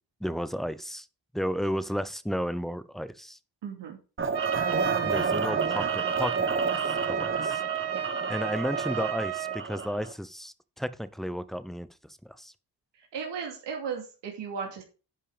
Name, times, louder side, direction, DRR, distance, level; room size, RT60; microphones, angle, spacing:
voice 1, 0.2-1.1 1.3-3.4 5.0-6.6 7.1-7.6 8.3-11.9 12.2-12.5, equal, ahead, 0.7 m, -33 dB
voice 2, 3.6-4.0 7.9-8.0 13.1-14.8, right 6 dB, 85° right, 2.8 m, -35 dB
sound 1, 4.2-10.1, right 4 dB, 30° right, 1.2 m, -30 dB
Trumpet, 4.3-9.6, right 10 dB, 70° right, 1.4 m, -32 dB
10.5 x 5.5 x 5.1 m
cardioid pair, 100°, 41 cm